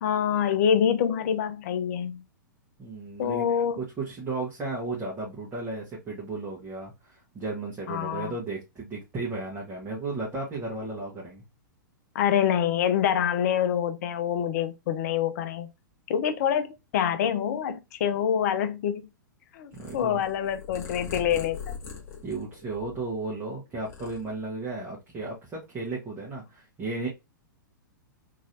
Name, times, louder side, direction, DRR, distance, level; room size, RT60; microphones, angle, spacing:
voice 1, 0.0-2.2 3.2-3.8 7.9-8.3 12.1-15.7 16.1-19.1 19.5-21.6, left 8 dB, 50° left, 0.6 m, -26 dB
voice 2, 2.8-3.5 3.8-11.4 19.7-20.2 22.2-27.1, right 3 dB, 20° right, 1.2 m, -34 dB
Purr, 19.7-23.3 23.6-24.7, left 6 dB, 25° left, 0.9 m, -41 dB
3.0 x 2.8 x 2.7 m
figure-of-eight pair, 105°, 11 cm